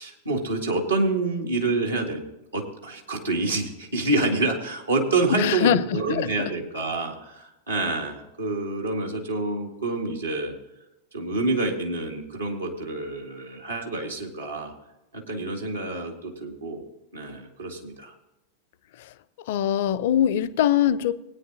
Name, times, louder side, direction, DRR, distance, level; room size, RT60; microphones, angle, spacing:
voice 1, 0.0-2.2 2.5-10.6 11.1-14.7 15.3-16.8 17.1-18.1, right 2 dB, 80° right, 2.2 m, -27 dB
voice 2, 5.3-5.8 6.1-6.3 19.5-21.1, left 10 dB, 55° left, 0.6 m, -22 dB
19.5 x 9.4 x 2.7 m
figure-of-eight pair, 90°, 0 cm